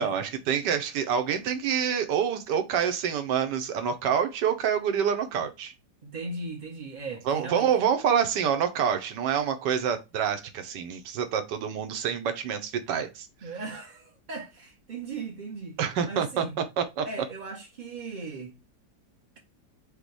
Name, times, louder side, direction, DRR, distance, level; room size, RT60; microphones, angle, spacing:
voice 1, 0.0-5.7 7.3-13.3 15.8-16.4 16.8-17.1, right 8 dB, 85° right, 1.4 m, -27 dB
voice 2, 6.0-7.7 13.4-15.8 16.0-16.5 17.0-18.6, right 3 dB, 65° right, 0.4 m, -38 dB
5.2 x 2.2 x 4.6 m
omnidirectional pair, 1.8 m